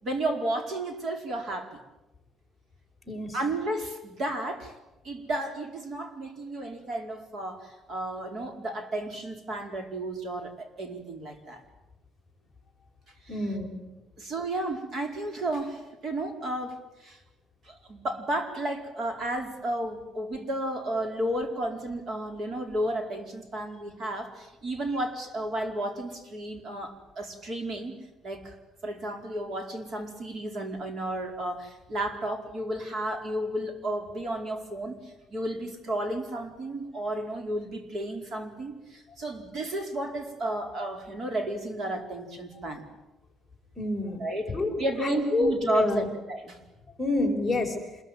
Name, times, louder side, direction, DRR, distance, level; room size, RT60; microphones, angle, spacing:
voice 1, 0.0-1.8 3.3-4.7 5.0-11.6 14.2-17.2 17.6-27.9 28.2-28.6 28.8-35.0 35.3-42.8 44.2-46.6, right 1 dB, 40° right, 5 dB, 4.6 m, -32 dB
voice 2, 3.1-3.4 13.3-13.8 43.8-44.2 44.5-46.1 47.0-47.8, left 2 dB, 5° left, -1 dB, 5.1 m, -28 dB
27.0 x 22.0 x 9.3 m, 0.98 s
cardioid pair, 170°, 0 cm